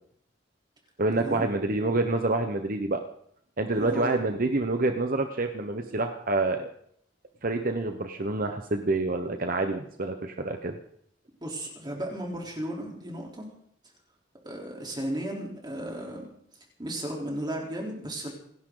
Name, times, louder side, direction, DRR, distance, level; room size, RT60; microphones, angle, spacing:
voice 1, 1.0-3.0 3.6-6.7 7.4-10.7, right 2 dB, 50° right, 6 dB, 1.1 m, -27 dB
voice 2, 3.7-4.2 11.4-13.5 14.4-16.3 16.8-18.3, right 1 dB, 25° right, -1 dB, 3.8 m, -34 dB
28.0 x 11.5 x 4.0 m, 0.68 s
head